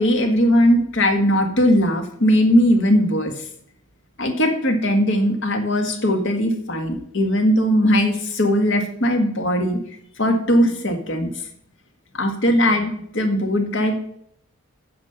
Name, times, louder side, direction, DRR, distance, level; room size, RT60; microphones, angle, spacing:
voice 1, 0.0-3.4 4.2-9.8 10.2-11.3 12.1-14.0, equal, 55° left, 5 dB, 1.7 m, -19 dB
9.6 x 7.1 x 5.6 m, 0.68 s
head